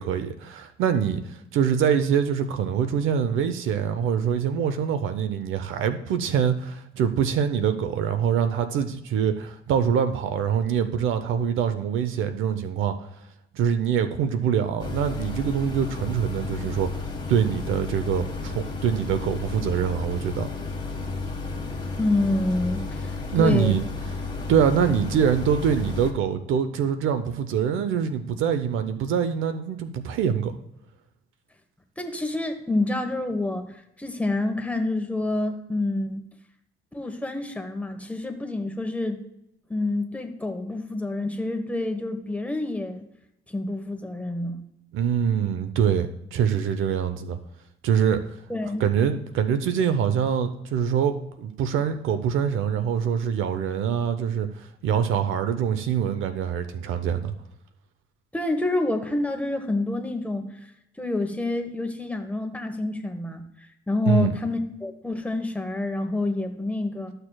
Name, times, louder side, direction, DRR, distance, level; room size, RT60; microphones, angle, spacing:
voice 1, 0.0-13.0 13.5-17.0 17.3-20.5 23.3-23.8 24.5-30.5 44.9-47.4 47.8-48.2 48.8-54.5 54.8-57.3 64.1-64.3, right 8 dB, 90° right, 9 dB, 0.7 m, -24 dB
sound 1, 14.8-26.1, left 3 dB, 25° left, 1.5 m, -32 dB
voice 2, 22.0-23.7 32.0-36.2 36.9-39.2 39.7-43.0 43.5-44.6 48.5-48.8 58.3-60.4 61.0-63.4 63.9-67.1, left 2 dB, 5° left, 4 dB, 1.1 m, -27 dB
13.5 x 6.7 x 2.3 m, 0.82 s
cardioid pair, 90°, 20 cm